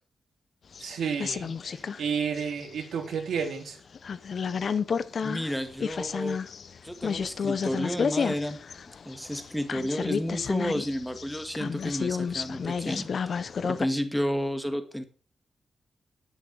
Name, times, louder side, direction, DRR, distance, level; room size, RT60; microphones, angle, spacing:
sound 1, 0.7-2.0 2.4-3.5 3.9-13.9, left 6 dB, 45° left, 0.8 m, -31 dB
voice 1, 0.8-3.8, right 6 dB, 80° right, 3 dB, 4.0 m, -31 dB
voice 2, 5.2-6.4 6.8-8.6 9.1-15.0, equal, ahead, 7 dB, 1.9 m, -31 dB
12.0 x 11.0 x 4.7 m, 0.35 s
wide cardioid pair, 175°, 0 cm